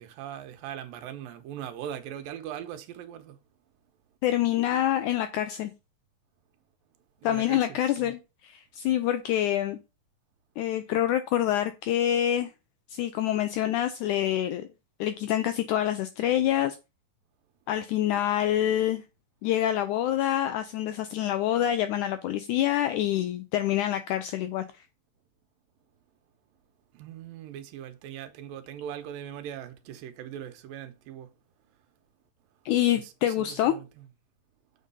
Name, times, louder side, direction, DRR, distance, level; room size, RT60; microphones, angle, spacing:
voice 1, 0.0-3.4 7.2-8.1 26.9-31.3 32.9-34.0, right 10 dB, 80° right, 2.6 m, -40 dB
voice 2, 4.2-5.7 7.2-9.8 10.6-12.5 12.9-14.7 15.0-16.8 17.7-19.0 19.4-24.7 32.7-33.7, left 12 dB, 85° left, 1.7 m, -26 dB
7.4 x 5.0 x 5.5 m
omnidirectional pair, 4.1 m